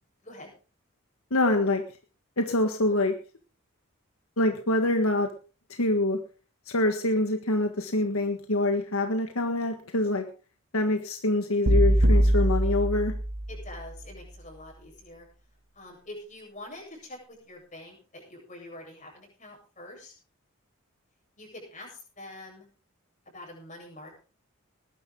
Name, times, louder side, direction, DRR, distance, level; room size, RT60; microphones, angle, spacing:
voice 1, 1.3-1.8 2.4-3.1 4.4-5.3 5.8-6.2 6.7-10.3 10.7-13.1, left 2 dB, 80° left, 5 dB, 1.6 m, -25 dB
sound 1, 11.7-13.9, equal, 80° right, 1.9 m, -22 dB
voice 2, 13.5-15.3 15.7-20.1 21.4-22.7 23.3-24.2, left 1 dB, 35° left, 0 dB, 7.9 m, -45 dB
20.0 x 11.0 x 3.8 m, 0.36 s
head